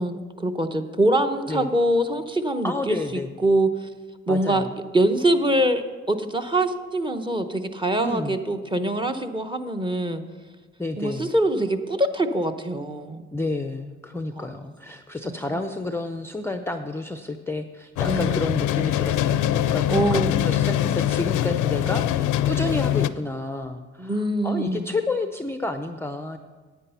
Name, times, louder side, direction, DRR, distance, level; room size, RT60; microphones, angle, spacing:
voice 1, 0.0-3.9 4.3-4.7 4.9-10.2 11.0-13.3 14.3-14.5 15.2-15.6 18.0-18.4 19.9-20.3 24.0-24.9, right 1 dB, 15° right, 7 dB, 0.9 m, -24 dB
voice 2, 2.6-3.3 4.3-4.7 8.0-8.4 10.8-11.3 13.3-26.4, left 2 dB, 10° left, 7 dB, 0.5 m, -30 dB
sound 1, 18.0-23.1, left 11 dB, 85° left, 0.5 m, -23 dB
9.9 x 8.8 x 5.6 m, 1.4 s
cardioid pair, 90°, 30 cm